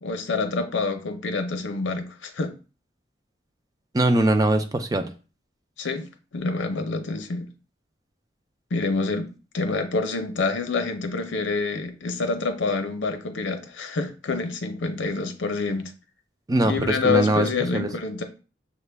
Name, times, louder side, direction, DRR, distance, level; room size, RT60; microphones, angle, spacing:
voice 1, 0.0-2.5 5.8-7.5 8.7-9.3 9.5-15.9 16.6-18.3, left 4 dB, 90° left, 0.6 m, -27 dB
voice 2, 3.9-5.1 16.5-17.5 17.7-17.9, right 2 dB, 20° right, 0.4 m, -21 dB
6.7 x 2.2 x 3.3 m
head